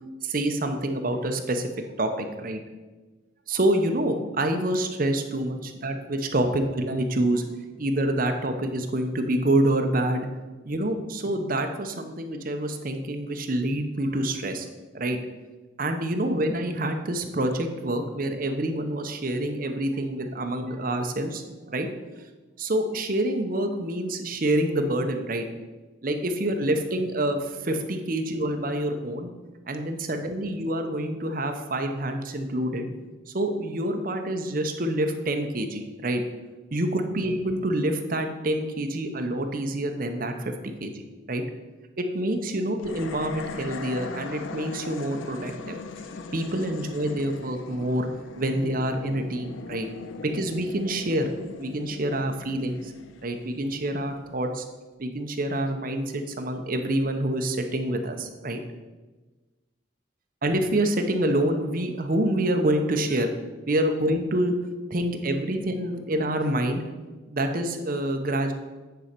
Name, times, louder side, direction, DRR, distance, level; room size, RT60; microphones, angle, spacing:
voice 1, 0.2-1.7 2.0-2.6 3.5-7.4 7.8-10.3 10.6-14.7 14.9-15.2 15.8-21.4 21.7-21.9 22.6-25.5 26.0-29.3 29.7-32.9 33.3-36.2 36.7-40.9 41.3-41.4 42.0-45.8 46.3-48.1 48.4-49.9 50.2-51.3 51.6-52.9 53.2-54.6 55.0-58.6 60.4-63.3 63.7-64.5 64.9-66.8 67.3-68.5, right 1 dB, 45° right, 5 dB, 0.8 m, -27 dB
sound 1, 42.8-54.2, left 4 dB, 80° left, 0.5 m, -40 dB
9.3 x 4.3 x 5.2 m, 1.2 s
head